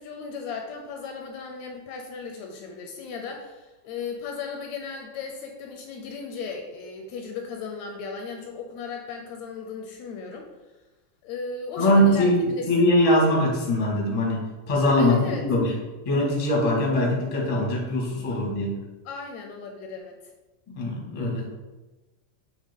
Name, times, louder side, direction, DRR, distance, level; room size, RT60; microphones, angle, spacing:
voice 1, 0.0-10.5 11.2-12.9 15.0-15.5 19.1-20.2, left 5 dB, 80° left, 3 dB, 1.7 m, -36 dB
voice 2, 11.8-14.4 14.7-15.7 16.0-18.8 20.7-21.5, left 1 dB, 30° left, -3 dB, 0.5 m, -22 dB
8.1 x 3.3 x 3.6 m, 1.1 s
omnidirectional pair, 3.5 m